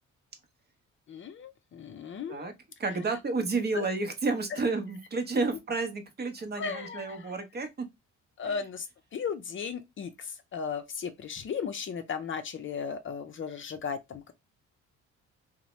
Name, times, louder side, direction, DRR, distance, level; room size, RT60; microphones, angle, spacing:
voice 1, 1.1-2.5 3.7-3.8 6.6-7.3 8.4-8.9 9.1-14.3, left 6 dB, 40° left, 0.5 m, -36 dB
voice 2, 2.8-7.9 8.4-8.6, right 3 dB, 35° right, 0.7 m, -31 dB
2.6 x 2.1 x 3.0 m
cardioid pair, 90°, 30 cm